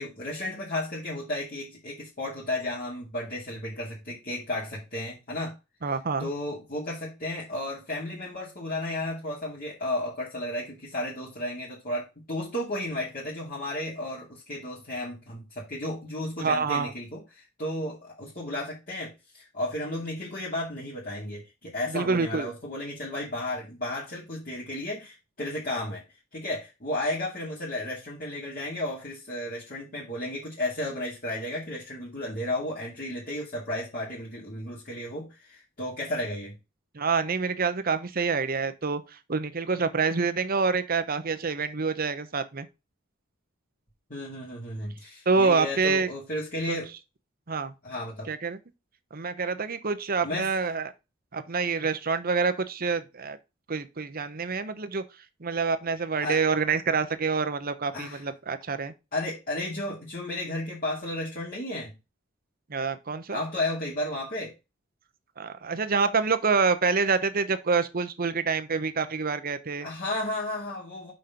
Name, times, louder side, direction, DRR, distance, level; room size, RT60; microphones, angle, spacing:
voice 1, 0.0-5.5 6.2-26.0 26.3-36.6 44.1-46.9 47.8-48.3 50.2-50.5 56.2-56.4 57.9-58.2 59.1-62.0 63.3-64.5 69.8-71.1, left 1 dB, 45° left, 2.6 m, -33 dB
voice 2, 5.8-6.3 16.4-16.9 21.9-22.5 36.9-42.7 45.3-46.1 46.7-46.8 47.5-47.7 48.3-48.6 49.1-50.9 51.3-53.4 53.7-55.0 55.4-58.9 62.7-63.4 65.4-69.9, right 4 dB, 45° right, 0.9 m, -27 dB
5.6 x 5.1 x 5.7 m
head